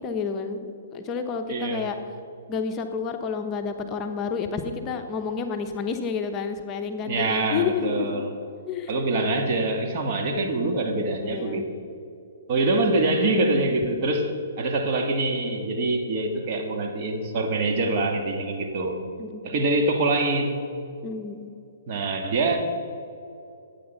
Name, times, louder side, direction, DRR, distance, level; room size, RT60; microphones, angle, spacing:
voice 1, 0.0-2.0 2.5-8.2 8.7-8.9 11.2-11.6 19.2-19.4 21.0-21.5, left 6 dB, 25° left, 5 dB, 0.9 m, -30 dB
voice 2, 1.5-1.9 7.0-8.3 8.9-11.7 12.5-14.3 14.6-19.0 19.4-20.6 21.9-22.6, right 2 dB, 45° right, 3 dB, 1.7 m, -24 dB
11.5 x 8.7 x 5.5 m, 2.6 s
hypercardioid pair, 135°, 0 cm